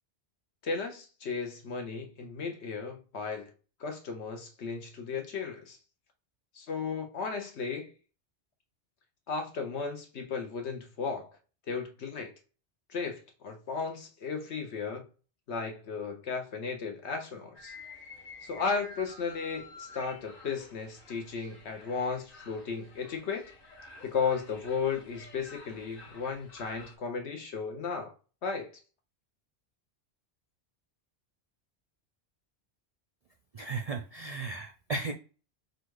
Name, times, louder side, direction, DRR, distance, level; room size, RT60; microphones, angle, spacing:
voice 1, 0.6-3.5 3.8-5.8 6.5-7.9 9.3-11.3 11.7-12.3 12.9-15.1 15.5-17.7 18.4-23.4 24.0-28.1 28.4-28.7, left 5 dB, 75° left, 1.2 m, -35 dB
sound 1, 17.5-27.0, left 3 dB, 50° left, 1.4 m, -50 dB
voice 2, 33.5-35.1, right 3 dB, 60° right, 0.4 m, -35 dB
3.9 x 2.4 x 4.6 m
omnidirectional pair, 1.2 m